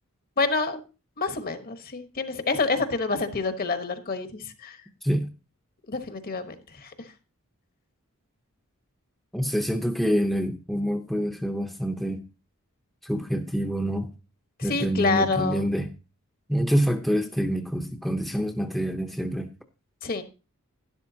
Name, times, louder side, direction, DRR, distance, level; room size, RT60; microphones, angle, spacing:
voice 1, 0.4-0.8 1.2-4.8 5.9-6.9 14.6-15.6 20.0-20.2, left 3 dB, 40° left, 8 dB, 1.1 m, -27 dB
voice 2, 9.3-12.2 13.0-14.1 14.6-15.9 16.5-19.5, equal, ahead, 4 dB, 0.7 m, -26 dB
12.0 x 11.0 x 2.8 m, 0.32 s
head